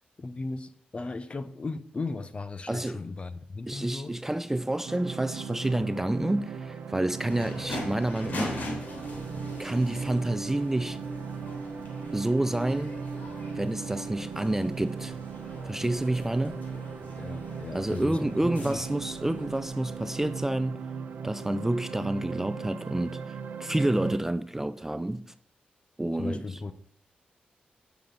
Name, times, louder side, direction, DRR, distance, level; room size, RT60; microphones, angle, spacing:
voice 1, 0.2-4.2 17.2-18.8 26.2-26.7, left 3 dB, 35° left, 0.7 m, -36 dB
voice 2, 2.7-3.0 3.7-8.6 9.6-11.0 12.1-12.9 13.6-15.2 15.7-16.6 17.7-20.8 21.2-25.3 26.0-26.4, right 1 dB, 10° right, 0.3 m, -29 dB
sound 1, 4.9-24.2, right 5 dB, 75° right, 0.8 m, -38 dB
sound 2, 7.2-20.4, left 1 dB, 60° left, 3.4 m, -42 dB
9.1 x 6.9 x 3.9 m
cardioid pair, 75°, 3 cm